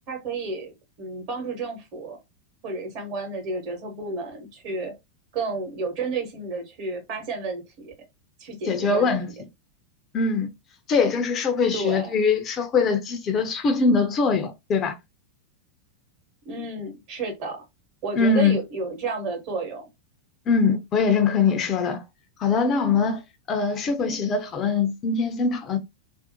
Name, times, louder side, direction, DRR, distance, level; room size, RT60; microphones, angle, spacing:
voice 1, 0.1-2.2 2.6-4.9 5.3-7.9 8.4-9.1 11.7-12.1 16.4-17.6 18.0-19.8, right 3 dB, 45° right, 1.0 m, -31 dB
voice 2, 8.6-9.3 10.1-10.5 10.9-14.9 18.1-18.6 20.5-22.0 22.4-23.2 23.5-25.8, left 4 dB, 30° left, 0.5 m, -22 dB
2.5 x 2.0 x 2.8 m
figure-of-eight pair, 90°, 0 cm